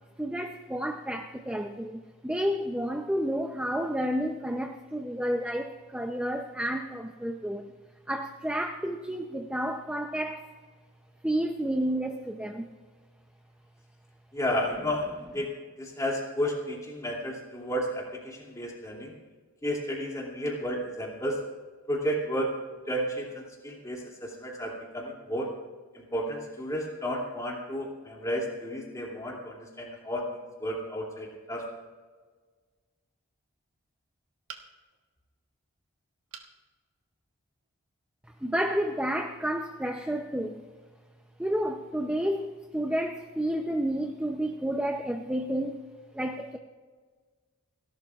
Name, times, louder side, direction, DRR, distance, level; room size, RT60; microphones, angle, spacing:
voice 1, 0.2-7.7 8.1-10.5 11.2-12.7 38.4-40.6 41.4-45.8 46.1-46.6, equal, 5° right, 3 dB, 0.5 m, -30 dB
voice 2, 14.3-19.1 19.6-21.5 21.9-22.5 22.9-25.5 25.9-31.7, equal, 15° left, -2 dB, 2.6 m, -32 dB
sound 1, 34.5-35.0 36.3-36.6 37.1-37.2 37.6-37.7, right 6 dB, 80° right, 1.3 m, -45 dB
30.0 x 12.0 x 2.4 m, 1.5 s
head